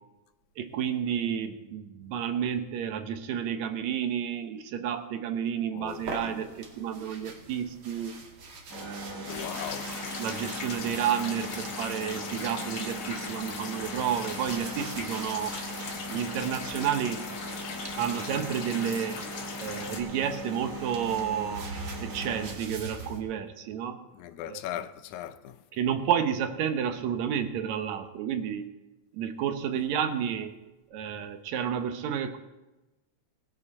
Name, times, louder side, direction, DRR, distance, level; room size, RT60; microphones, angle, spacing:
voice 1, 0.6-8.1 8.7-9.5 10.2-15.5 16.1-17.2 18.0-19.2 19.6-21.7 22.0-24.0 24.5-24.6 25.7-28.7 29.1-30.5 30.9-32.4, right 8 dB, 75° right, 2.2 m, -31 dB
voice 2, 5.7-6.5 9.3-9.9 24.1-25.6 29.7-29.9, left 11 dB, 90° left, 2.1 m, -39 dB
sound 1, 5.9-18.6 19.6-23.2, right 3 dB, 50° right, 2.4 m, -44 dB
sound 2, 8.7-22.5, equal, 20° right, 0.6 m, -40 dB
sound 3, 9.3-20.0, left 4 dB, 55° left, 2.0 m, -39 dB
19.0 x 9.0 x 4.3 m
omnidirectional pair, 3.3 m